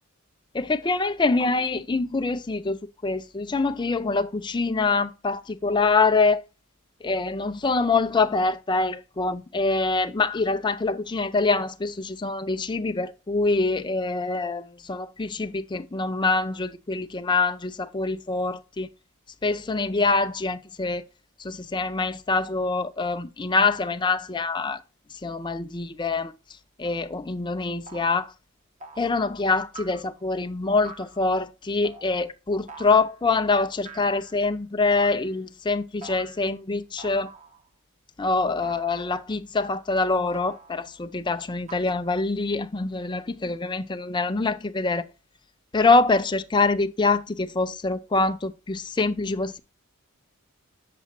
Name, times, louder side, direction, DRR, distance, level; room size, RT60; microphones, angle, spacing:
voice 1, 0.5-6.4 7.0-18.9 19.4-21.0 21.4-24.8 25.2-26.3 26.8-28.3 29.0-37.3 38.2-45.1 45.7-49.6, left 3 dB, 20° left, 0.5 m, -25 dB
sound 1, 26.8-27.1 27.9-28.2 28.8-29.2 29.7-30.2 30.8-31.2 31.8-32.1 32.7-33.2 33.9-34.5 34.9-35.4 36.0-36.5 37.0-37.7 38.6-39.3 40.3-41.0 41.7-41.8, right 3 dB, 35° right, 1.2 m, -45 dB
8.4 x 6.9 x 3.0 m
head